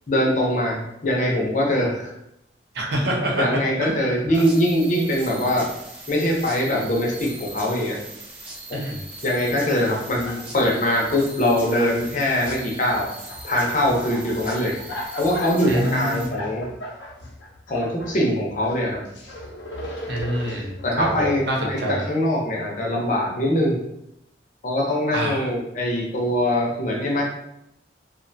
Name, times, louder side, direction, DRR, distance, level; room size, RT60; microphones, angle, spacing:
voice 1, 0.1-2.1 3.4-5.7 6.1-8.0 8.7-8.9 9.2-13.1 13.4-14.8 15.2-16.7 17.7-19.0 20.8-23.8 24.6-27.2, left 1 dB, 45° left, -2 dB, 0.6 m, -22 dB
voice 2, 2.7-3.4 3.8-4.1 8.7-9.0 15.7-16.3 20.1-22.1 25.1-25.5, right 1 dB, 65° right, -1 dB, 0.6 m, -26 dB
sound 1, 4.3-16.3, right 2 dB, 30° right, 0.7 m, -40 dB
sound 2, 10.1-11.3 11.6-12.6 12.9-18.1 18.5-21.8, left 1 dB, 90° left, 0.5 m, -37 dB
2.5 x 2.2 x 2.6 m, 0.82 s
head